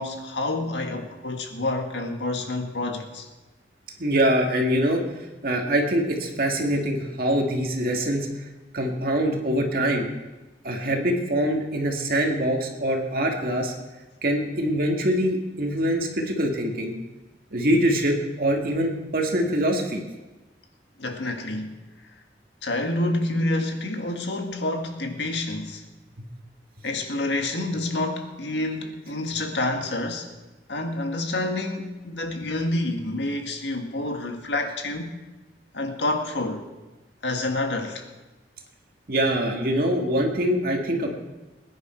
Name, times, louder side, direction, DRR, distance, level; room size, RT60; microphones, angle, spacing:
voice 1, 0.0-3.3 21.0-21.8 22.6-25.8 26.8-30.3 30.7-35.2 35.7-36.6 37.2-38.1, left 2 dB, 90° left, 1.8 m, -28 dB
voice 2, 4.0-5.0 5.4-8.3 8.7-10.1 10.6-13.7 14.2-16.9 17.5-20.0 39.1-41.1, equal, 55° right, 2.0 m, -24 dB
20.5 x 10.5 x 4.5 m
head